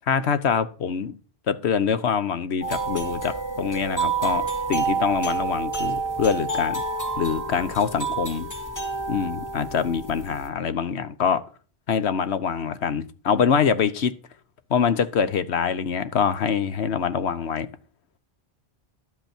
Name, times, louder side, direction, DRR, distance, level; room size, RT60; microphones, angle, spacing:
voice 1, 0.1-1.2 1.5-6.8 7.2-8.5 9.1-11.4 11.9-14.1 14.7-17.7, left 7 dB, 90° left, 1.2 m, -24 dB
sound 1, 2.6-10.5, right 4 dB, 15° left, 2.0 m, -28 dB
12.0 x 8.1 x 4.4 m
omnidirectional pair, 1.1 m